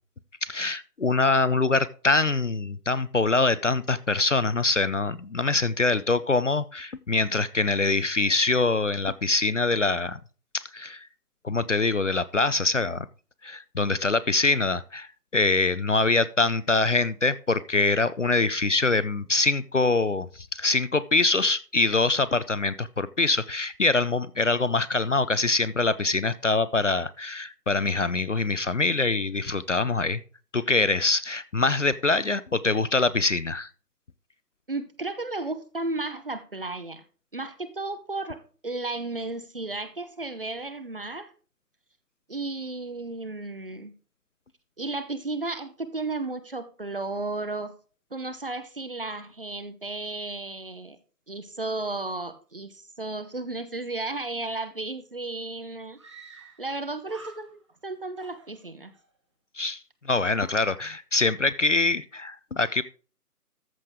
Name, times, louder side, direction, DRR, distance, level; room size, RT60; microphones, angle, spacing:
voice 1, 0.4-10.2 10.5-11.1 11.4-13.1 13.4-30.2 30.5-33.7 59.6-62.8, left 3 dB, 50° left, 16 dB, 0.5 m, -24 dB
voice 2, 34.7-37.0 37.3-41.3 42.3-43.9 44.8-47.7 48.1-51.0 51.3-56.0 56.6-58.9, right 2 dB, 35° right, 12 dB, 0.8 m, -34 dB
Screaming, 54.9-55.0 55.2-55.3 56.0-56.8 57.0-57.8 58.1-59.1, right 4 dB, 20° right, 1.2 m, -49 dB
13.5 x 6.4 x 3.6 m, 0.37 s
figure-of-eight pair, 165°, 48 cm